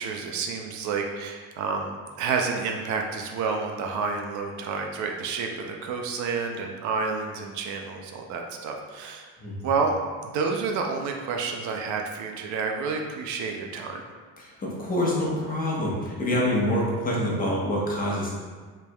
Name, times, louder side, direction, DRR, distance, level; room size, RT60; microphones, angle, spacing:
voice 1, 0.0-1.9 2.2-9.3 9.6-10.0 10.3-14.0, right 5 dB, 70° right, 2 dB, 0.6 m, -29 dB
voice 2, 14.4-18.3, left 1 dB, 25° left, -4 dB, 1.1 m, -26 dB
4.8 x 3.4 x 2.3 m, 1.5 s
cardioid pair, 120°, 31 cm